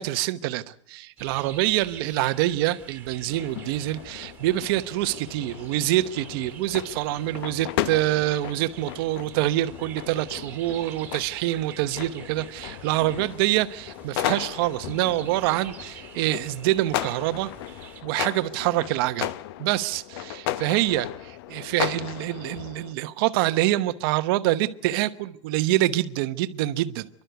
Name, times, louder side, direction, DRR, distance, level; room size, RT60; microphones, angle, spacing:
voice 1, 0.0-17.5 18.0-19.3 19.6-27.1, right 15 dB, 50° right, 1.1 m, -26 dB
sound 1, 1.2-18.0, right 8 dB, 15° right, 2.4 m, -47 dB
sound 2, 3.3-22.9, left 13 dB, 55° left, 0.8 m, -35 dB
29.0 x 12.0 x 8.1 m
supercardioid pair, 165°, 16 cm